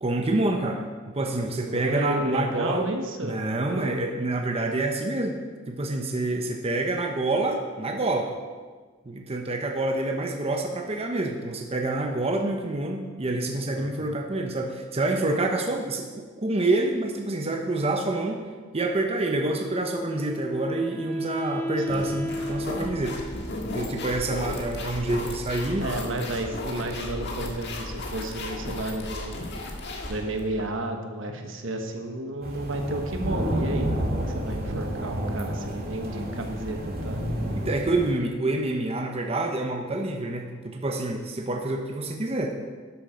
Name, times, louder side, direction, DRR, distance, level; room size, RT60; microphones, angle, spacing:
voice 1, 0.0-0.8 1.1-2.9 3.2-5.4 5.7-8.3 9.1-18.4 18.7-23.2 23.7-25.8 37.6-42.6, right 2 dB, 30° right, 2 dB, 0.9 m, -27 dB
voice 2, 1.5-3.4 3.8-3.9 13.7-14.1 21.9-22.1 25.8-29.4 30.1-37.2, right 1 dB, 70° right, 4 dB, 1.3 m, -32 dB
Wind instrument woodwind instrument, 19.6-24.6, equal, 5° left, 2.1 m, -34 dB
sound 1, 21.9-30.7, left 1 dB, 60° left, 1.7 m, -35 dB
sound 2, 32.4-38.1, equal, 50° right, 2.0 m, -30 dB
12.5 x 7.4 x 5.1 m, 1.4 s
head